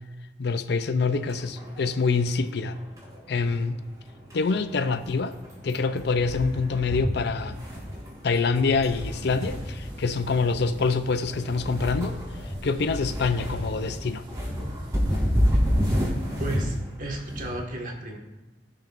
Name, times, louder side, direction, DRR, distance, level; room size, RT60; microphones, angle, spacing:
voice 1, 0.4-2.8 3.3-3.8 4.3-5.3 5.6-7.7 8.2-12.2 12.6-14.2, left 4 dB, 65° left, 11 dB, 0.5 m, -25 dB
sound 1, 1.2-17.6, equal, 20° right, 2.8 m, -31 dB
sound 2, 8.9-16.8, equal, 75° right, 2.3 m, -47 dB
voice 2, 16.4-18.2, right 1 dB, 50° right, 0 dB, 1.7 m, -34 dB
17.5 x 6.4 x 2.5 m, 1.1 s
head